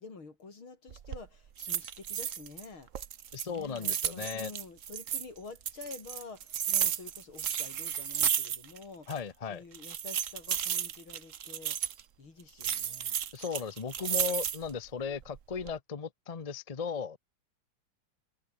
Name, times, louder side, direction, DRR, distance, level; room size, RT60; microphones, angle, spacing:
voice 1, 0.0-2.9 3.4-9.1 9.5-11.8 12.2-13.2, left 4 dB, 75° left, 5.1 m, -48 dB
sound 1, 0.9-1.2 1.6-2.6 2.9-5.2 5.6-8.8 9.1-9.2 9.7-12.0 12.6-14.7 15.2-15.7, right 9 dB, 50° right, 1.0 m, -33 dB
voice 2, 3.3-4.5 9.1-9.6 13.3-17.2, left 6 dB, 35° left, 0.6 m, -36 dB
omnidirectional pair, 2.3 m